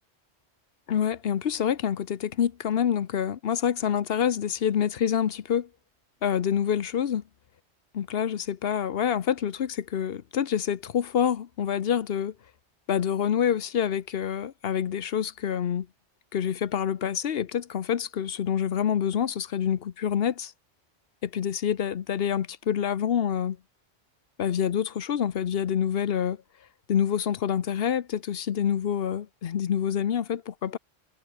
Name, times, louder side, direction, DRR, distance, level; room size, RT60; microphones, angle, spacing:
voice 1, 0.9-5.7 6.2-7.2 7.9-12.3 12.9-15.9 16.3-20.5 21.2-23.6 24.4-26.4 26.9-30.8, left 8 dB, 60° left, 1.0 m, -27 dB
omnidirectional pair, 1.2 m